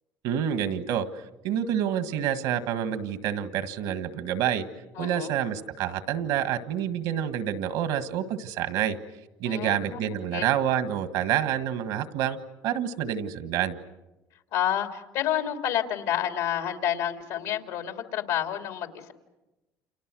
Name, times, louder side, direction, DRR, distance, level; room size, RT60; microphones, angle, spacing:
voice 1, 0.2-1.1 1.4-4.7 5.0-9.0 9.4-12.4 12.6-13.8, right 10 dB, 85° right, 10 dB, 1.7 m, -28 dB
voice 2, 5.0-5.3 9.5-10.0 10.3-10.4 14.5-19.1, left 10 dB, 90° left, 5 dB, 2.8 m, -29 dB
29.5 x 29.0 x 6.3 m, 1.0 s
cardioid pair, 110°, 7 cm